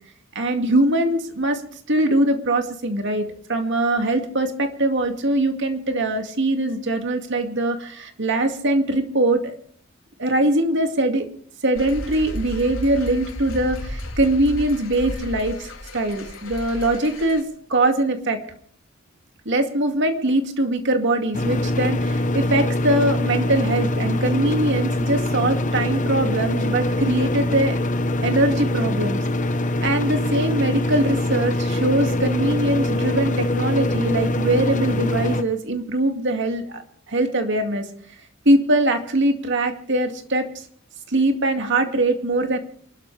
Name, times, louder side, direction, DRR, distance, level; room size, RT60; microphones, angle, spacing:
voice 1, 0.3-1.6 1.9-9.6 10.2-11.3 11.6-18.4 19.5-27.8 28.2-29.2 29.8-36.8 37.1-37.9 38.5-40.6 41.1-42.6, right 1 dB, 60° right, 5 dB, 2.3 m, -22 dB
sound 1, 11.8-17.4, left 1 dB, 80° left, 3.2 m, -34 dB
sound 2, 21.3-35.4, left 1 dB, 40° left, 1.0 m, -23 dB
28.5 x 12.5 x 3.4 m, 0.62 s
head